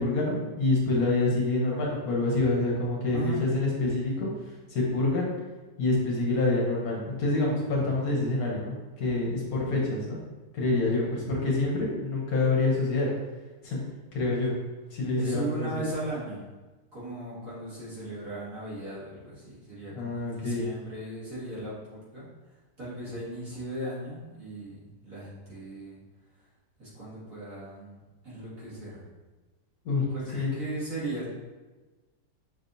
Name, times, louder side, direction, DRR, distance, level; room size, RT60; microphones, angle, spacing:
voice 1, 0.0-4.3 4.7-5.3 5.8-10.2 10.5-13.1 13.6-13.8 14.1-14.6 14.9-15.8 19.9-20.6 29.8-30.0 30.3-30.5, left 2 dB, 65° left, -3 dB, 1.3 m, -27 dB
voice 2, 15.2-16.5 16.9-22.3 22.8-26.0 26.8-29.0 30.1-31.3, right 1 dB, 50° right, -9 dB, 2.1 m, -37 dB
5.5 x 3.4 x 2.6 m, 1.2 s
omnidirectional pair, 1.8 m